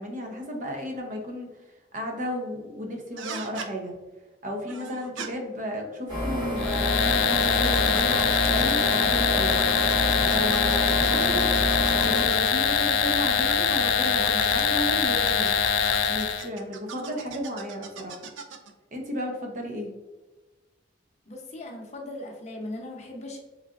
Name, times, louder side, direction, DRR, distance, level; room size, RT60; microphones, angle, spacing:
voice 1, 0.0-3.9 4.4-9.6 10.2-11.5 12.0-15.6 16.1-18.3 18.9-19.9, equal, 40° right, 2 dB, 0.7 m, -33 dB
sound 1, 3.2-3.7 4.7-5.3 6.3-9.1 9.4-12.7 13.3-14.6 15.3-18.7, right 6 dB, 85° right, 0.4 m, -40 dB
sound 2, 6.1-12.3, equal, 25° right, 1.2 m, -28 dB
sound 3, 6.6-16.5, left 6 dB, 75° left, 0.3 m, -23 dB
voice 2, 21.3-23.4, left 1 dB, 35° left, 0 dB, 0.7 m, -38 dB
3.7 x 3.2 x 2.4 m, 1.2 s
head